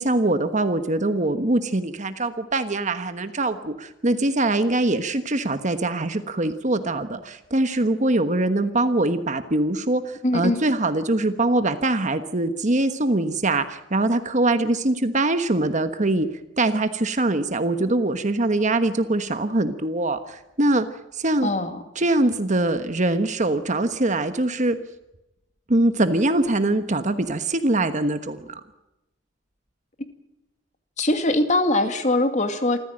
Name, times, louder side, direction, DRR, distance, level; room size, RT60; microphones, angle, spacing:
voice 1, 0.0-16.3 16.6-20.9 21.1-21.5 21.9-24.8 25.7-28.6, right 2 dB, 40° right, 9 dB, 1.3 m, -23 dB
voice 2, 10.2-10.6 21.4-21.8 31.0-32.9, left 2 dB, 40° left, 8 dB, 2.4 m, -22 dB
27.5 x 14.5 x 8.9 m, 0.94 s
head